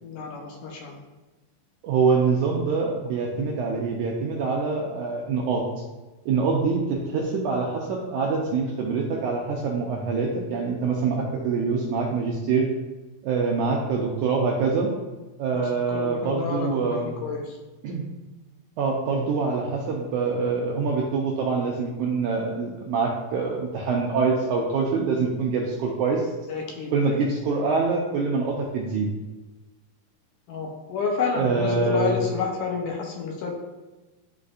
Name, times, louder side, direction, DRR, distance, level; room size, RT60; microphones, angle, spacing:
voice 1, 0.0-1.0 15.5-17.6 26.5-27.2 30.5-33.5, left 5 dB, 75° left, 0 dB, 2.1 m, -30 dB
voice 2, 1.8-5.6 6.2-12.7 13.2-14.9 15.4-17.1 17.8-18.1 18.8-26.3 26.9-29.1 31.4-32.1, right 4 dB, 80° right, -1 dB, 1.8 m, -25 dB
11.0 x 4.0 x 2.5 m, 1.2 s
omnidirectional pair, 4.1 m